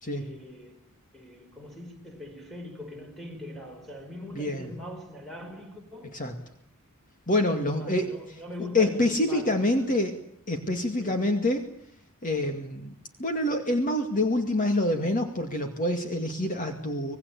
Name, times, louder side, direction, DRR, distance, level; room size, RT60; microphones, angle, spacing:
voice 1, 0.1-0.8 1.1-6.4 7.4-10.0 11.0-11.4, left 1 dB, ahead, 5.5 m, -42 dB
voice 2, 4.4-4.7 6.1-6.3 7.3-8.1 8.7-10.2 10.5-11.6 12.2-12.9 13.2-17.2, left 1 dB, 35° left, 2.3 m, -26 dB
26.0 x 19.5 x 8.4 m
head